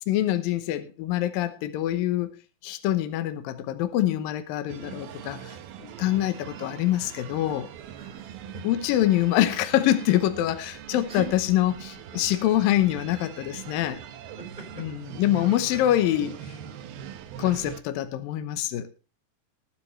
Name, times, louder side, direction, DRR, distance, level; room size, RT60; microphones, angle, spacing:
voice 1, 0.1-2.4 2.6-5.5 5.8-7.7 8.6-14.0 14.8-16.4 17.4-18.9, left 13 dB, 75° left, 2.6 m, -25 dB
sound 1, 4.7-17.8, right 9 dB, 80° right, 3.0 m, -42 dB
voice 2, 8.0-8.6 11.1-11.3 14.4-14.9, right 3 dB, 10° right, 4.1 m, -40 dB
19.0 x 10.5 x 3.2 m
omnidirectional pair, 4.3 m